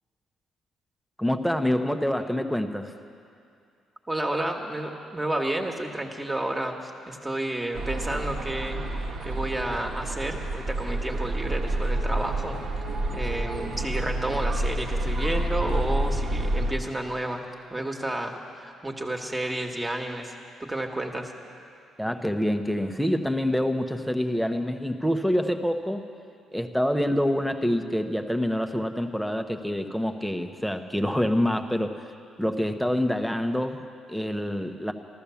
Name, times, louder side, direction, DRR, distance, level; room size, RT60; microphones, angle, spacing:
voice 1, 1.2-2.9 22.0-26.0 26.5-32.0 32.4-34.9, equal, ahead, 7 dB, 0.9 m, -26 dB
voice 2, 4.1-8.8 9.2-12.6 13.1-17.4 17.7-20.3 20.6-21.3, right 1 dB, 15° right, 2 dB, 1.6 m, -31 dB
sound 1, 7.7-16.7, right 1 dB, 65° right, 1.5 m, -29 dB
14.0 x 14.0 x 7.0 m, 2.5 s
cardioid pair, 90°, 0 cm